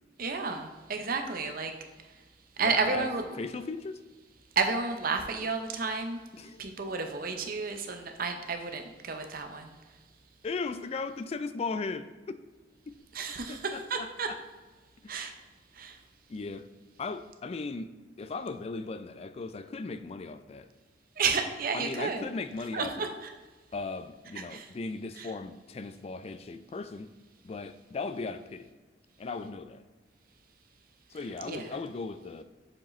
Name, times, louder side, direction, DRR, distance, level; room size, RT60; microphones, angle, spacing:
voice 1, 0.2-1.7 2.6-3.3 4.6-6.2 6.6-9.7 13.1-14.3 15.1-15.3 15.8-16.0 21.2-22.2 22.7-23.3 24.5-24.7 25.2-25.3 31.4-31.7, right 4 dB, 55° right, 5 dB, 0.7 m, -31 dB
voice 2, 2.6-3.1 3.4-4.0 6.3-6.7 10.4-12.4 12.9-13.0 13.5-14.4 15.0-15.1 16.3-16.7 17.0-17.9 18.2-20.7 21.7-23.1 23.7-27.1 27.4-28.7 29.2-29.8 31.1-32.4, left 4 dB, 35° left, 11 dB, 0.3 m, -37 dB
7.3 x 4.9 x 3.2 m, 1.3 s
head